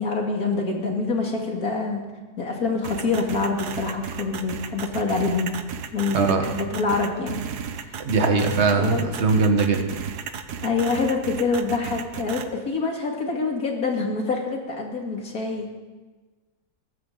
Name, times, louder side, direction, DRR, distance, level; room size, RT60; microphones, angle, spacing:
voice 1, 0.0-2.0 2.4-5.5 5.9-7.4 7.8-8.0 8.8-9.0 10.6-15.7, left 4 dB, 65° left, 1 dB, 2.8 m, -26 dB
sound 1, 2.8-12.4, right 7 dB, 80° right, 1.5 m, -34 dB
voice 2, 6.1-6.5 8.0-9.8, right 4 dB, 45° right, 4 dB, 1.7 m, -20 dB
22.5 x 13.0 x 4.0 m, 1.3 s
omnidirectional pair, 1.7 m